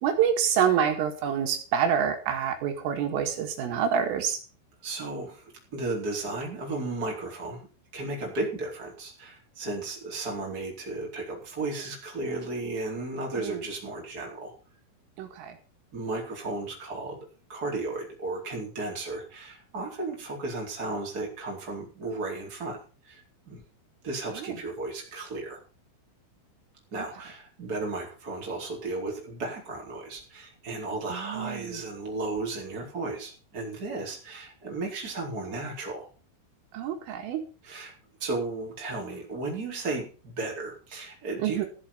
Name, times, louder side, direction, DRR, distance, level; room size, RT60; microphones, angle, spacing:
voice 1, 0.0-4.4 13.4-13.6 15.2-15.6 24.3-24.5 27.0-27.1 31.1-31.8 36.7-37.4 41.4-41.7, right 8 dB, 80° right, 4 dB, 4.5 m, -27 dB
voice 2, 4.8-7.7 7.9-14.5 15.9-17.2 17.5-22.8 23.0-23.6 24.0-25.6 26.9-36.1 37.6-37.9 38.2-41.7, right 2 dB, 20° right, -1 dB, 4.2 m, -34 dB
15.5 x 7.7 x 6.9 m, 0.37 s
omnidirectional pair, 5.8 m